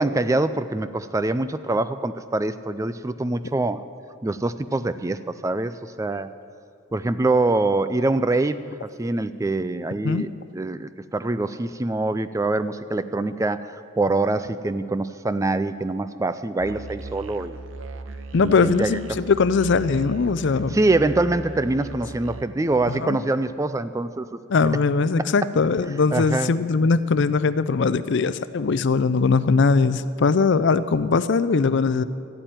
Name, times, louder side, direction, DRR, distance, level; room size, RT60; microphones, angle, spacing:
voice 1, 0.0-3.8 4.2-6.3 6.9-17.6 18.4-18.9 20.7-24.4 26.1-26.5, right 2 dB, 15° right, 13 dB, 0.3 m, -24 dB
Musical instrument, 16.6-22.5, right 3 dB, 70° right, 0.7 m, -38 dB
voice 2, 18.3-20.8 22.9-23.2 24.5-32.0, left 4 dB, 60° left, 15 dB, 0.5 m, -20 dB
13.5 x 8.8 x 9.1 m, 2.5 s
head